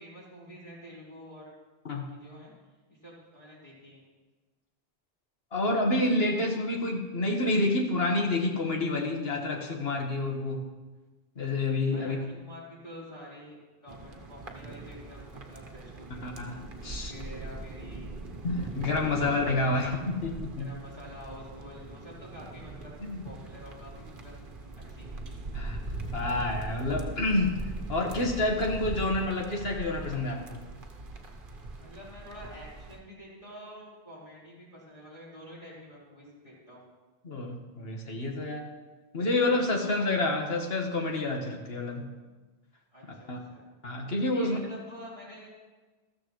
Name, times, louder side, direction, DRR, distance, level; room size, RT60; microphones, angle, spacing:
voice 1, 0.0-1.5 1.9-2.5 2.9-4.0 11.9-16.4 16.9-18.1 20.6-22.9 23.2-24.3 24.7-25.2 31.8-36.8 39.8-40.1 42.9-43.7 44.3-45.5, equal, 30° left, -8 dB, 4.6 m, -48 dB
voice 2, 5.5-10.6 11.4-12.2 16.2-17.1 18.4-20.7 23.0-23.2 25.5-25.8 26.1-30.7 37.2-38.7 39.1-42.1 43.3-43.4 43.8-44.7, left 2 dB, 75° left, 1 dB, 1.8 m, -28 dB
sound 1, 13.9-33.0, right 2 dB, 55° right, 1.2 m, -41 dB
13.5 x 13.5 x 3.2 m, 1.3 s
omnidirectional pair, 1.0 m